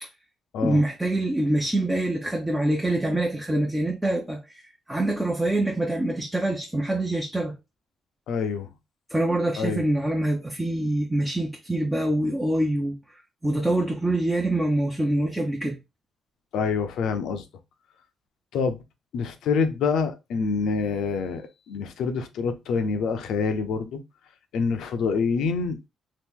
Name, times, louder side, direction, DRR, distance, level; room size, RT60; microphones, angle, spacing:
voice 1, 0.6-7.6 9.1-13.0 13.4-15.8, right 1 dB, 10° right, 0.6 m, -25 dB
voice 2, 8.3-8.7 9.6-9.8 16.5-17.4 18.5-18.8 19.1-24.0 24.5-25.9, left 5 dB, 80° left, 0.6 m, -26 dB
2.9 x 2.5 x 3.6 m
cardioid pair, 90°, 0 cm